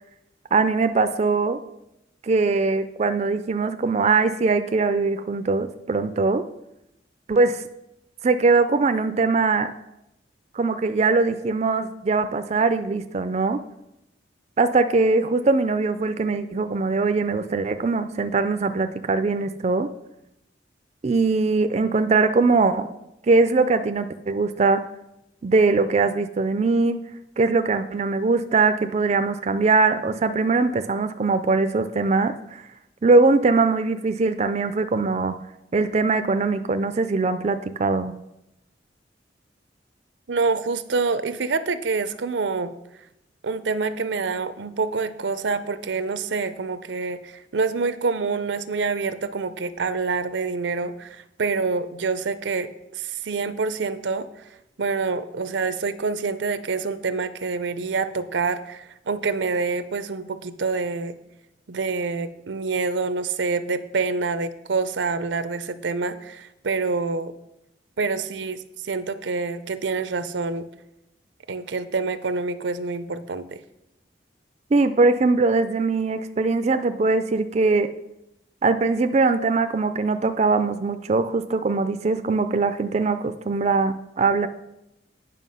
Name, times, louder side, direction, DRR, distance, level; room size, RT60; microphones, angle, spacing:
voice 1, 0.5-1.6 2.2-6.4 7.3-7.6 8.2-9.7 10.5-13.6 14.6-19.9 21.0-22.9 23.3-24.8 25.4-27.0 27.4-32.6 33.0-35.3 35.7-38.1 74.7-77.9 78.6-84.5, right 3 dB, 35° right, 10 dB, 0.4 m, -21 dB
voice 2, 40.3-42.7 43.4-54.3 54.8-61.1 61.7-67.3 68.0-70.7 71.5-73.6, right 4 dB, 85° right, 13 dB, 0.6 m, -26 dB
9.2 x 5.8 x 5.6 m, 0.86 s
head